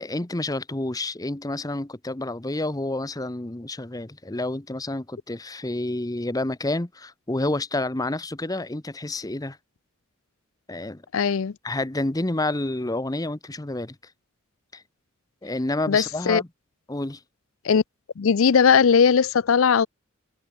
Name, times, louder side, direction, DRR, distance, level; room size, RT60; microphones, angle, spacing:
voice 1, 0.0-9.6 10.7-11.0 11.6-14.1 14.7-14.8 15.4-16.5 16.9-17.2, left 2 dB, 15° left, 0.8 m, -29 dB
voice 2, 11.1-11.5 15.9-16.4 17.6-17.8 18.2-19.9, left 6 dB, 70° left, 0.5 m, -19 dB
head